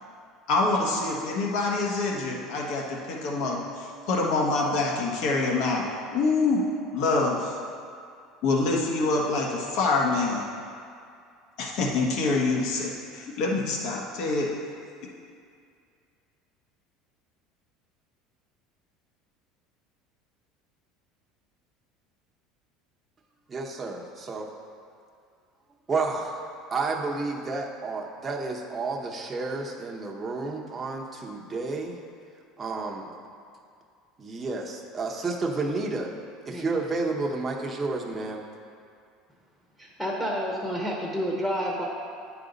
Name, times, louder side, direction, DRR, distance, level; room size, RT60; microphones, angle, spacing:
voice 1, 0.5-5.8 6.1-6.6 6.9-7.6 8.4-10.4 11.6-14.5, left 3 dB, 65° left, -1 dB, 1.4 m, -26 dB
voice 2, 23.5-24.5 25.9-26.4 26.7-32.0 32.6-33.1 34.2-36.1 36.5-38.4, right 3 dB, 20° right, -1 dB, 0.8 m, -31 dB
voice 3, 39.8-41.8, equal, 5° left, -3 dB, 1.0 m, -29 dB
9.5 x 5.0 x 4.0 m, 2.3 s
supercardioid pair, 120°, 0 cm